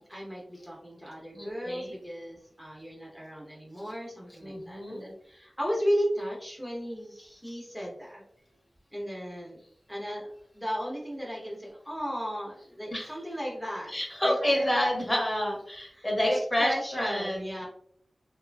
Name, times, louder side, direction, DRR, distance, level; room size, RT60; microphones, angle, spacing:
voice 1, 0.0-8.2 8.9-9.6 9.9-13.9 14.2-14.7 15.9-17.7, equal, 5° right, -3 dB, 0.8 m, -35 dB
voice 2, 1.3-1.9 4.4-5.0 12.9-13.1 13.9-17.4, left 1 dB, 30° left, -2 dB, 1.0 m, -29 dB
2.7 x 2.5 x 2.2 m, 0.65 s
wide cardioid pair, 60°, 0 cm